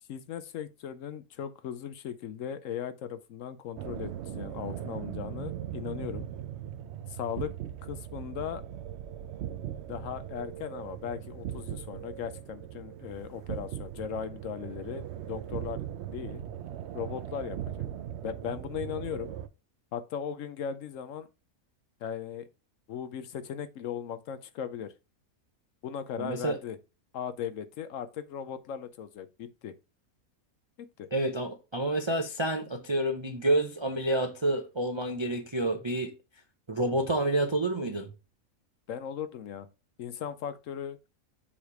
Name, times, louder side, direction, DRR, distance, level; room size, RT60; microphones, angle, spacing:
voice 1, 0.1-6.3 7.1-7.5 7.8-8.6 9.9-15.8 16.1-16.4 16.9-17.9 18.2-19.3 19.9-21.3 22.0-22.5 22.9-24.9 25.8-26.8 27.1-29.7 30.8-31.1 38.9-39.7 40.0-41.0, left 8 dB, 70° left, 0.9 m, -37 dB
sound 1, 3.8-19.5, right 11 dB, 65° right, 0.7 m, -39 dB
voice 2, 26.2-26.6 31.1-36.1 36.7-38.1, right 1 dB, 35° right, 0.4 m, -29 dB
7.1 x 3.3 x 4.7 m
omnidirectional pair, 1.5 m